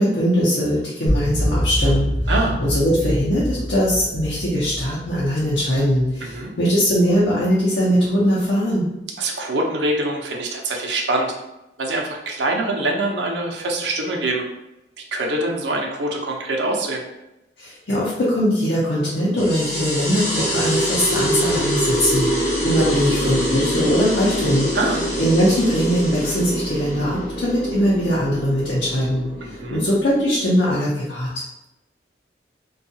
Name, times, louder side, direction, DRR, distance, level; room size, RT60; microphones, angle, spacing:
voice 1, 0.0-2.1 2.6-8.9 17.6-24.7 25.2-29.2 29.7-31.3, equal, 75° left, -7 dB, 0.7 m, -20 dB
sound 1, 1.1-6.4, equal, 5° left, 1.0 m, -25 dB
voice 2, 2.3-2.6 6.2-6.5 9.2-11.3 11.8-14.4 15.1-17.0 22.4-22.8 24.7-25.0 29.4-29.8, right 2 dB, 75° right, 0 dB, 0.5 m, -24 dB
sound 2, 19.4-30.4, equal, 35° left, 1.0 m, -25 dB
2.6 x 2.3 x 2.7 m, 0.93 s
head